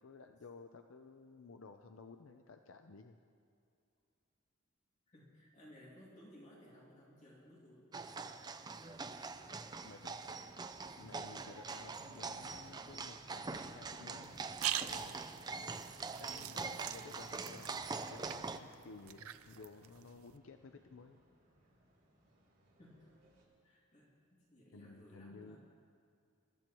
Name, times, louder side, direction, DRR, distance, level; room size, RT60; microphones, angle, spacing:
voice 1, 0.0-3.2 9.8-10.5 11.0-14.4 14.7-15.2 16.2-17.7 18.1-21.2 24.7-25.6, left 4 dB, 65° left, 6 dB, 0.5 m, -55 dB
voice 2, 5.1-7.9 22.8-23.1 23.6-25.6, equal, 35° left, -5 dB, 2.5 m, -59 dB
sound 1, 7.9-18.6, right 4 dB, 20° right, 0.4 m, -44 dB
sound 2, 11.5-23.4, equal, 45° right, 4.2 m, -68 dB
sound 3, 14.2-20.4, right 11 dB, 85° right, 0.5 m, -44 dB
23.5 x 13.0 x 3.1 m, 2.4 s
head